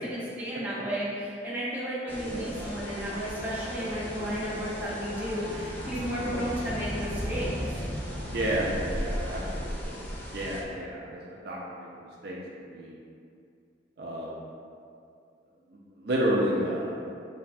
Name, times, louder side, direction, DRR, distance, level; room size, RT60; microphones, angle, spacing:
voice 1, 0.0-7.7, equal, 10° right, -9 dB, 0.7 m, -33 dB
sound 1, 2.1-10.6, equal, 10° left, 0.3 m, -36 dB
voice 2, 2.2-2.5 6.2-6.4 8.3-9.9 10.3-11.2 11.4-11.9 12.2-12.4 12.7-12.9 14.0-14.3 16.0-17.0, right 1 dB, 60° right, -4 dB, 0.5 m, -30 dB
sound 2, 2.5-9.6, equal, 55° left, 1.2 m, -44 dB
3.3 x 2.3 x 4.0 m, 2.4 s
head